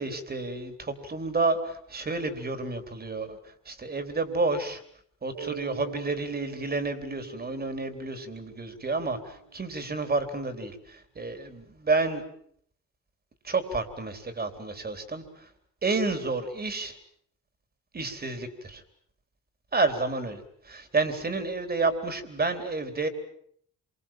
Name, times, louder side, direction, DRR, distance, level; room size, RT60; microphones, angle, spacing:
voice 1, 0.0-4.8 5.2-12.2 13.4-15.5 15.8-17.0 17.9-18.8 19.7-23.1, right 3 dB, 30° right, 9 dB, 4.0 m, -30 dB
Mallet percussion, 5.3-9.8, right 6 dB, 80° right, 3.3 m, -44 dB
27.0 x 24.0 x 7.6 m, 0.66 s
cardioid pair, 90°, 30 cm